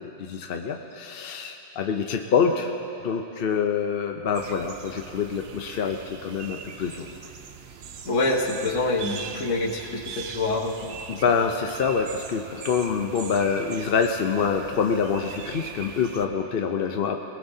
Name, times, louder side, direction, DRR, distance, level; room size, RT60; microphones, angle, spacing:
voice 1, 0.0-2.7 3.0-7.1 11.1-17.2, left 6 dB, 55° left, 4 dB, 0.8 m, -26 dB
sound 1, 4.3-16.3, right 7 dB, 60° right, 0.9 m, -41 dB
voice 2, 8.0-10.9 11.3-11.4, left 2 dB, 85° left, 2 dB, 1.5 m, -26 dB
21.0 x 20.5 x 2.7 m, 2.9 s
omnidirectional pair, 1.3 m